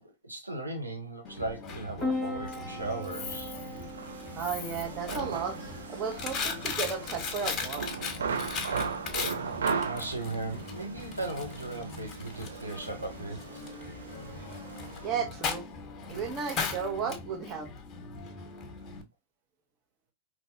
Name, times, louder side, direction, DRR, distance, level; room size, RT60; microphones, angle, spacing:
voice 1, 0.0-3.5 9.8-13.6, right 2 dB, 85° right, 1.2 m, -37 dB
Coin (dropping), 1.2-19.0, left 5 dB, 30° left, 1.4 m, -39 dB
Piano, 2.0-17.0, left 2 dB, 5° left, 1.3 m, -43 dB
sound 1, 2.7-15.1, right 5 dB, 70° right, 0.7 m, -38 dB
voice 2, 4.4-5.6 5.9-7.9 15.0-15.6 16.1-17.7, right 6 dB, 30° right, 1.4 m, -34 dB
5.3 x 3.2 x 2.7 m
figure-of-eight pair, 90°, 0 cm